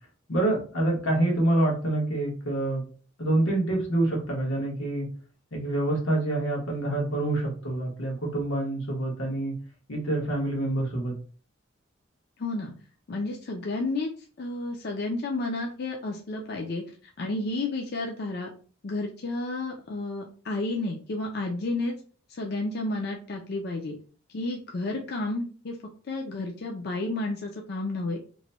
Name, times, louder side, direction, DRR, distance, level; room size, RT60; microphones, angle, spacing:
voice 1, 0.3-2.8 3.2-5.1 5.5-9.6 9.9-11.1, right 1 dB, 90° left, -1 dB, 1.3 m, -26 dB
voice 2, 12.4-12.7 13.1-14.1 14.4-16.8 17.2-18.5 18.8-21.9 22.3-23.9 24.3-25.8 26.1-28.2, left 2 dB, 55° left, 1 dB, 0.5 m, -31 dB
3.0 x 2.2 x 4.0 m, 0.40 s
head